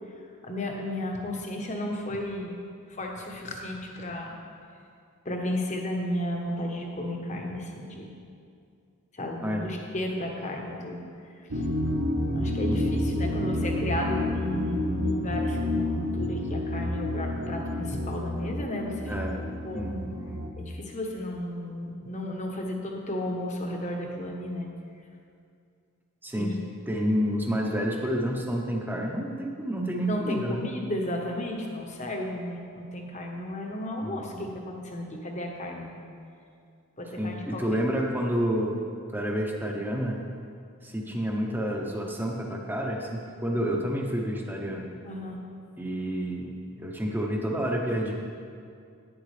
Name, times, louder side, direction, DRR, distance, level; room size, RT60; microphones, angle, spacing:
voice 1, 0.4-2.5 2.9-4.3 5.2-8.1 9.2-11.0 11.5-11.6 12.3-19.1 19.6-19.9 20.6-24.7 26.3-26.6 30.1-36.0 37.0-37.8 45.1-45.4, left 1 dB, 35° left, 1 dB, 1.0 m, -33 dB
sound 1, 11.5-20.5, left 1 dB, 75° right, 0.9 m, -29 dB
voice 2, 19.1-19.4 19.7-20.2 26.2-26.6 26.9-30.6 34.0-34.5 37.2-38.9 39.1-40.2 40.8-44.9 45.8-48.1, equal, 10° right, 0 dB, 0.8 m, -29 dB
11.0 x 9.2 x 3.3 m, 2.4 s
head